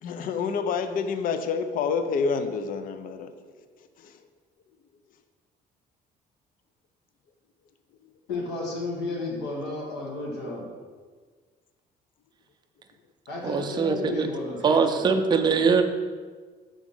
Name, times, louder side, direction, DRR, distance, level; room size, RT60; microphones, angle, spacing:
voice 1, 0.0-3.4 4.0-4.1, left 5 dB, 55° left, 9 dB, 0.4 m, -28 dB
voice 2, 8.3-10.7 13.3-15.1, left 2 dB, 80° left, -3 dB, 1.2 m, -33 dB
voice 3, 13.4-14.3 14.6-15.8, right 5 dB, 25° right, 5 dB, 0.5 m, -22 dB
5.0 x 3.6 x 5.4 m, 1.5 s
cardioid pair, 110°, 17 cm